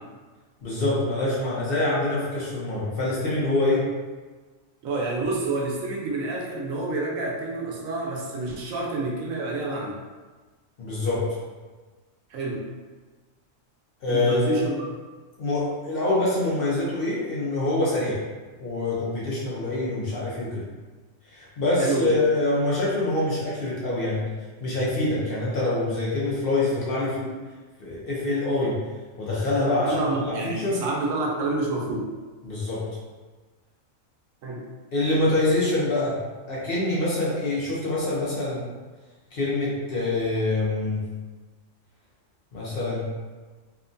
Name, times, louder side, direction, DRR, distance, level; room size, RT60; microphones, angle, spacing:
voice 1, 0.6-3.8 10.8-11.3 14.0-14.6 15.4-18.2 18.6-20.6 21.3-24.2 24.6-27.3 27.8-28.8 29.2-30.8 32.4-32.8 34.9-36.2 36.5-38.6 39.3-41.0 42.5-43.0, left 2 dB, 55° left, -7 dB, 0.7 m, -25 dB
voice 2, 4.8-10.0 12.3-12.7 14.1-14.9 21.8-22.2 27.0-27.1 29.7-32.1 34.4-34.6, right 2 dB, 85° right, -2 dB, 1.0 m, -28 dB
2.9 x 2.2 x 2.5 m, 1.3 s
omnidirectional pair, 1.4 m